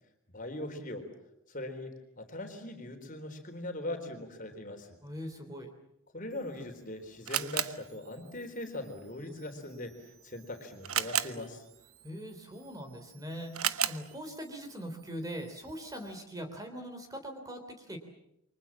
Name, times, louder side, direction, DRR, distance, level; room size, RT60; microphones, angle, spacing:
voice 1, 0.3-1.1 1.5-5.0 6.1-11.6, left 1 dB, 35° left, 5 dB, 4.0 m, -40 dB
voice 2, 5.0-5.7 12.0-18.0, equal, 15° right, 5 dB, 3.5 m, -41 dB
Camera, 6.3-16.2, right 10 dB, 80° right, 1.0 m, -39 dB
29.0 x 24.5 x 7.4 m, 0.80 s
head